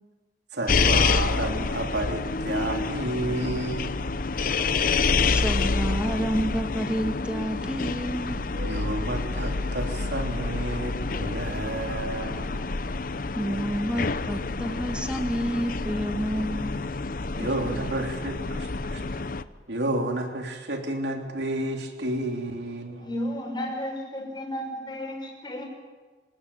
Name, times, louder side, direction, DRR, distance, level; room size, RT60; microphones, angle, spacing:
voice 1, 0.5-4.1 8.5-12.6 17.4-19.2 19.7-23.1, right 1 dB, 75° right, 3 dB, 3.4 m, -31 dB
sound 1, 0.7-19.4, left 4 dB, 55° left, 0.8 m, -28 dB
voice 2, 5.2-8.4 13.3-16.7 17.4-17.5, equal, 5° right, 5 dB, 2.3 m, -29 dB
voice 3, 23.0-25.7, equal, 25° left, 1 dB, 5.9 m, -33 dB
26.5 x 19.0 x 9.0 m, 1.4 s
head